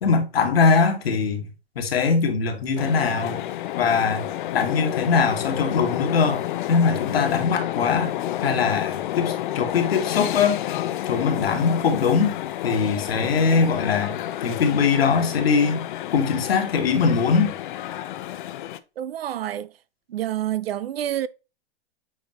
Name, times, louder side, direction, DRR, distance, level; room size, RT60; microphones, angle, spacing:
voice 1, 0.0-1.5 1.8-3.4 3.8-4.3 4.5-6.4 6.7-10.6 11.1-12.4 12.6-14.2 14.4-15.8 16.1-17.6, left 5 dB, 75° left, 1.8 m, -21 dB
sound 1, 2.8-18.8, left 13 dB, 55° left, 0.7 m, -30 dB
voice 2, 19.0-19.7 20.1-21.3, right 12 dB, 75° right, 0.6 m, -28 dB
8.4 x 4.3 x 3.0 m
hypercardioid pair, 115°, 30 cm